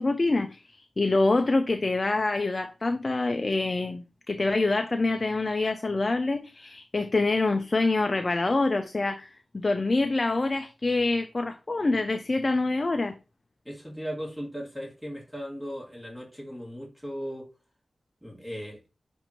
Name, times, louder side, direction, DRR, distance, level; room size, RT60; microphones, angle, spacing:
voice 1, 0.0-13.2, left 2 dB, 45° left, 0.4 m, -26 dB
voice 2, 13.7-17.5 18.2-18.8, equal, 10° right, 2.1 m, -37 dB
6.5 x 2.6 x 3.0 m
cardioid pair, 45°, 0 cm